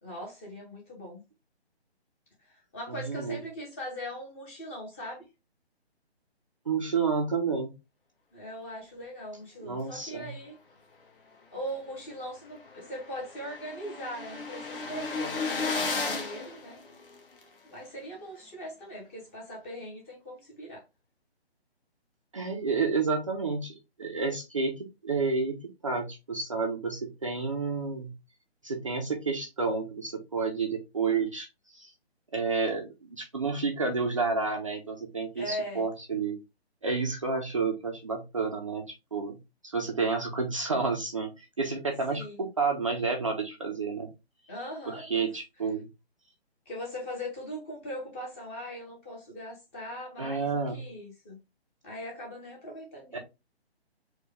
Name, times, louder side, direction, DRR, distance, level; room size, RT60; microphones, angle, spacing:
voice 1, 0.0-1.2 2.4-5.2 8.3-10.6 11.5-16.8 17.6-20.8 35.3-35.9 42.1-42.4 44.5-45.3 46.7-51.4 51.8-53.2, equal, 15° left, -1 dB, 0.7 m, -40 dB
voice 2, 2.9-3.4 6.7-7.7 9.6-10.3 22.3-28.1 28.6-31.5 31.7-31.9 32.3-36.4 36.8-38.8 39.1-39.4 39.6-44.1 44.9-45.9 50.2-50.8 53.1-53.2, right 4 dB, 30° right, 1 dB, 0.4 m, -30 dB
sound 1, 11.9-12.0 12.3-12.4 12.5-17.4, left 4 dB, 55° left, 1.1 m, -34 dB
4.5 x 2.2 x 3.1 m, 0.24 s
figure-of-eight pair, 145°, 33 cm